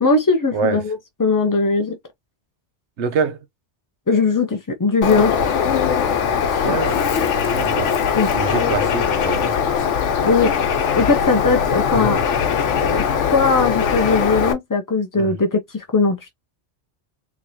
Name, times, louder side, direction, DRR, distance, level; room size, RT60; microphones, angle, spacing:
voice 1, 0.0-2.0 4.1-5.3 6.6-6.8 8.1-8.3 10.2-10.5 11.0-12.2 12.6-13.0 13.3-16.3, left 4 dB, 35° left, 0.3 m, -19 dB
voice 2, 3.0-3.4 6.5-7.9 8.3-9.7 15.2-15.4, right 5 dB, 75° right, 1.0 m, -25 dB
Bird, 5.0-14.5, left 7 dB, 85° left, 1.1 m, -20 dB
3.8 x 3.1 x 2.7 m
omnidirectional pair, 1.2 m